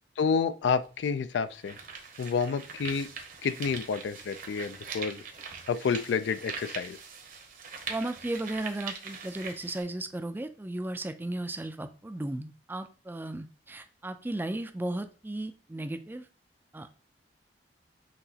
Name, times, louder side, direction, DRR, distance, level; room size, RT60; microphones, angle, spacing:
voice 1, 0.2-1.8 2.2-3.1 3.4-5.2 5.7-7.0, left 5 dB, 75° left, 12 dB, 0.4 m, -29 dB
sound 1, 0.6-0.7 1.3-9.8, right 5 dB, 50° right, 0.8 m, -42 dB
voice 2, 7.9-16.2 16.7-16.9, right 1 dB, 10° right, 9 dB, 0.3 m, -35 dB
5.9 x 2.9 x 2.8 m, 0.35 s
head